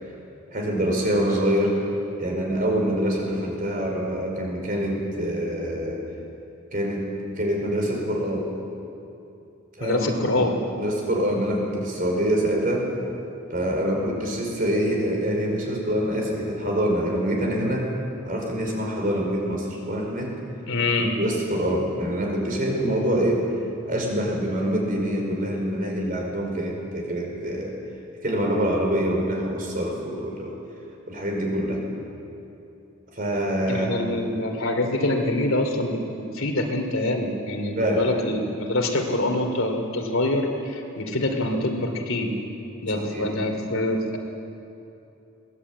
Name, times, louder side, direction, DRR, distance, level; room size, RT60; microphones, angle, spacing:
voice 1, 0.5-1.8 2.2-6.0 6.7-7.1 7.4-8.5 9.8-10.5 10.8-12.9 13.5-17.9 18.2-20.4 21.2-23.5 23.8-27.7 28.2-30.6 31.1-31.8 33.1-33.9 37.8-38.0 42.9-43.3, equal, 40° right, 0 dB, 4.8 m, -25 dB
voice 2, 9.8-10.6 20.7-21.2 33.7-42.4 42.8-44.2, left 1 dB, 75° left, 3 dB, 2.8 m, -25 dB
22.0 x 18.0 x 8.6 m, 2.8 s
head